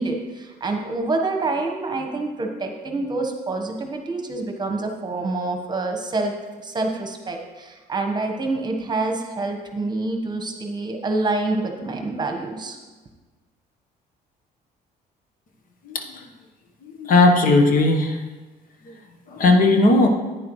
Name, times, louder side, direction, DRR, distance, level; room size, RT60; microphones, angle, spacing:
voice 1, 0.0-6.3 6.6-12.8, right 2 dB, 25° right, 3 dB, 1.2 m, -27 dB
voice 2, 15.8-16.3 16.8-18.2 18.8-19.0 19.3-20.1, left 2 dB, 55° left, 4 dB, 1.1 m, -17 dB
10.5 x 9.3 x 3.2 m, 1.3 s
cardioid pair, 110°, 17 cm